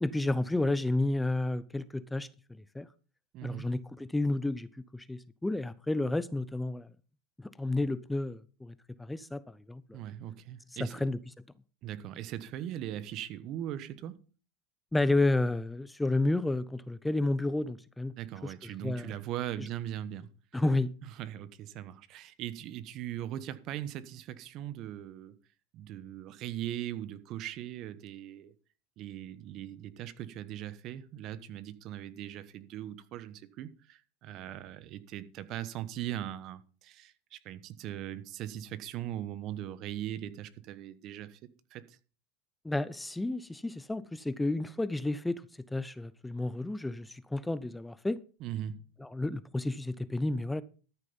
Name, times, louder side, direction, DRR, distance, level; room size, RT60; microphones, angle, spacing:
voice 1, 0.0-2.9 3.4-6.9 7.4-10.0 10.8-11.2 14.9-18.1 18.4-19.1 20.5-20.9 42.6-45.4 45.7-48.2 49.0-50.6, left 2 dB, 5° left, 0.6 m, -31 dB
voice 2, 3.3-3.7 9.9-11.0 11.8-14.2 18.2-20.6 21.1-25.4 25.7-28.5 29.0-41.4 41.7-42.0 48.4-48.9, right 12 dB, 50° right, 1.1 m, -40 dB
13.0 x 6.8 x 5.4 m
supercardioid pair, 110°, 0 cm